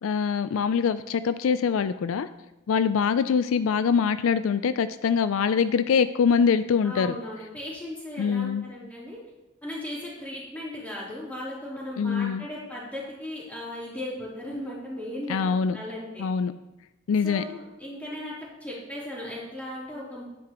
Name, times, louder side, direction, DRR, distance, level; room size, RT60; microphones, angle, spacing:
voice 1, 0.0-2.3 2.7-7.2 8.2-8.7 12.0-12.4 15.3-15.8 16.2-16.5 17.1-17.4, left 6 dB, 75° left, 12 dB, 0.3 m, -24 dB
voice 2, 6.8-9.2 9.6-16.3 17.2-20.2, left 1 dB, 5° left, -7 dB, 3.2 m, -37 dB
10.5 x 9.7 x 3.0 m, 1.0 s
head